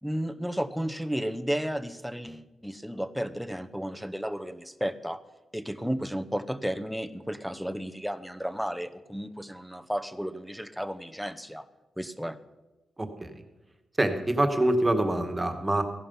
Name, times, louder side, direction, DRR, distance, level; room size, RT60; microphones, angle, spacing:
voice 1, 0.0-5.2 5.5-11.6 12.0-12.4, equal, ahead, 9 dB, 0.9 m, -33 dB
voice 2, 13.0-13.3 14.0-15.8, right 1 dB, 20° right, 7 dB, 1.8 m, -25 dB
15.5 x 11.0 x 5.7 m, 1.1 s
cardioid pair, 80°, 0 cm